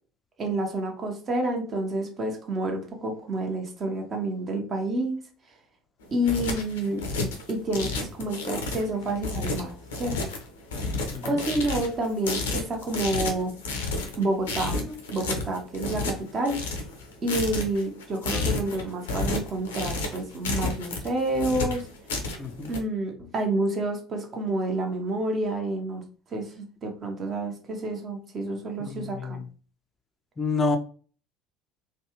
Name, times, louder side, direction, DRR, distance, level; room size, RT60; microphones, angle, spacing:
voice 1, 0.4-5.2 6.1-7.0 7.5-9.7 10.0-10.2 11.2-13.5 14.2-16.6 17.2-21.8 22.7-26.0 26.3-29.4, right 1 dB, 35° right, 3 dB, 0.9 m, -29 dB
sound 1, 6.0-22.8, left 3 dB, 70° left, 0.6 m, -31 dB
voice 2, 22.4-22.7 28.8-29.4 30.4-30.8, left 3 dB, 25° left, 5 dB, 0.5 m, -29 dB
3.2 x 2.3 x 3.0 m, 0.39 s
figure-of-eight pair, 65°, 0 cm